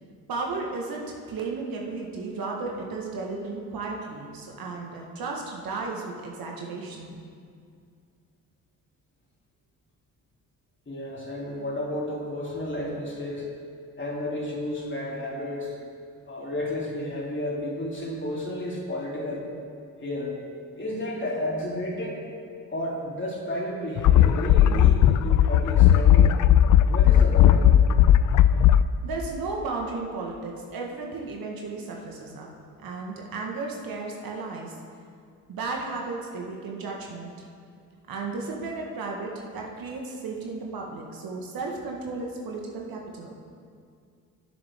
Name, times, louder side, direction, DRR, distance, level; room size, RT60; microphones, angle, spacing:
voice 1, 0.3-7.2 29.0-32.5 32.8-34.7 35.5-37.3 38.1-43.4, right 3 dB, 60° right, 0 dB, 1.7 m, -34 dB
voice 2, 10.9-13.5 14.0-15.8 16.3-19.5 20.0-20.4 20.8-22.2 22.7-26.4 26.9-27.7, left 1 dB, 30° left, -3 dB, 3.1 m, -32 dB
sound 1, 24.0-28.8, left 10 dB, 50° left, 0.5 m, -17 dB
16.0 x 7.4 x 3.7 m, 2.3 s
hypercardioid pair, 50°, 39 cm